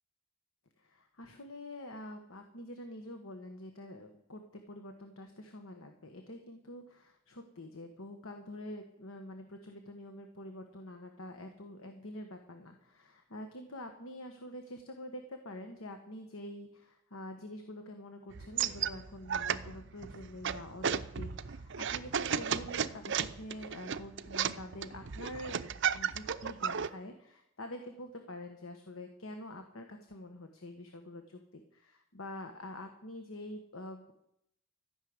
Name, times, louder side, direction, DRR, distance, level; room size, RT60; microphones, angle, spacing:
voice 1, 0.8-34.1, left 1 dB, 70° left, 5 dB, 1.4 m, -46 dB
sound 1, 18.3-26.9, right 7 dB, 60° right, 0.6 m, -34 dB
14.0 x 6.6 x 9.6 m, 0.79 s
head